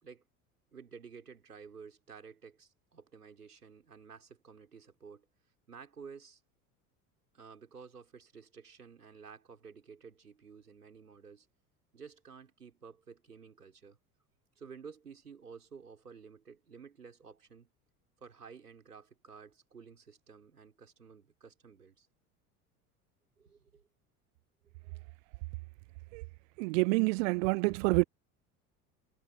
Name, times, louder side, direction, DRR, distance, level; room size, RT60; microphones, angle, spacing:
voice 1, 0.7-5.3 5.7-6.4 7.3-11.5 11.9-14.0 14.6-17.7 18.2-22.1 23.4-23.8 24.8-24.9, right 6 dB, 85° right, 6.3 m, -52 dB
voice 2, 26.6-28.0, right 26 dB, 55° right, 0.6 m, -27 dB
figure-of-eight pair, 75°, 45 cm